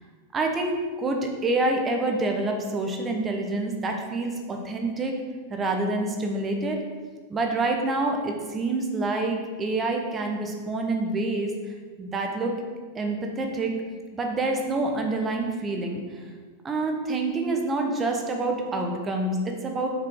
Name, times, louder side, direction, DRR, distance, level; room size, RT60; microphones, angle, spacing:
voice 1, 0.3-5.2 5.5-6.8 7.3-11.5 12.0-12.5 12.9-13.7 14.1-16.0 16.6-19.9, right 2 dB, 20° right, 2 dB, 1.3 m, -27 dB
7.8 x 5.8 x 4.8 m, 1.5 s
figure-of-eight pair, 90°, 0 cm